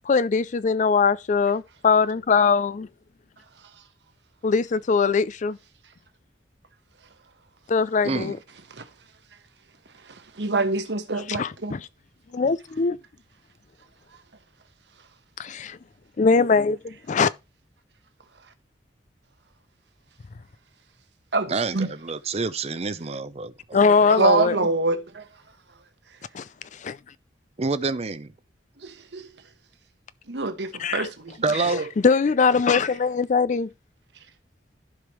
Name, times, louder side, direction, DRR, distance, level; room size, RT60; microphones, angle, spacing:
voice 1, 0.1-2.9 4.4-5.6 7.7-8.4 11.3-11.9 12.3-13.0 15.4-15.8 16.2-17.3 23.7-24.6 26.3-26.4 26.8-27.0 30.8-31.1 32.0-33.7, left 5 dB, 45° left, 0.4 m, -21 dB
voice 2, 8.0-8.4 21.5-23.8 27.6-28.3 31.4-31.9, right 4 dB, 35° right, 0.6 m, -27 dB
voice 3, 10.4-11.7 21.3-21.9 24.1-25.3 28.8-29.3 30.3-31.4 31.7-31.8, right 3 dB, 80° right, 1.2 m, -25 dB
15.0 x 5.1 x 3.1 m
head